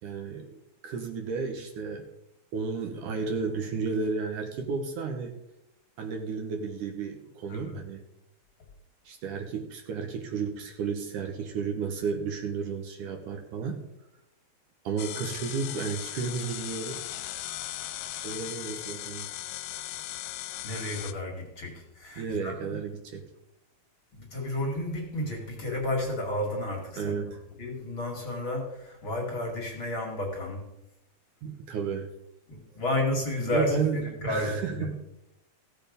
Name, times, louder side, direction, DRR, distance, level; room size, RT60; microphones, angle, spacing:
voice 1, 0.0-2.1 2.5-5.3 6.0-8.0 9.1-13.8 14.8-17.1 18.2-19.3 22.2-23.3 26.9-27.4 31.4-32.1 33.4-35.0, right 5 dB, 70° right, 3 dB, 2.5 m, -33 dB
sound 1, 15.0-21.1, left 14 dB, 85° left, 2.3 m, -38 dB
voice 2, 20.6-22.5 24.1-27.1 27.6-30.7 32.5-34.9, left 1 dB, 40° left, 0 dB, 2.5 m, -32 dB
16.0 x 6.9 x 5.2 m, 0.86 s
omnidirectional pair, 4.0 m